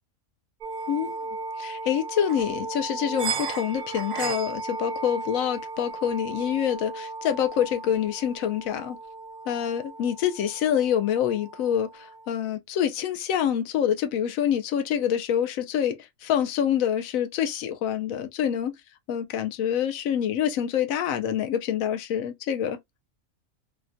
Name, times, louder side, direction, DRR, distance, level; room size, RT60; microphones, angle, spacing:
sound 1, 0.6-12.3, right 4 dB, 80° right, 0.4 m, -35 dB
voice 1, 1.6-9.0 9.5-16.0 16.2-18.7 19.1-22.8, left 9 dB, 85° left, 1.0 m, -26 dB
3.5 x 2.2 x 2.5 m
omnidirectional pair, 1.4 m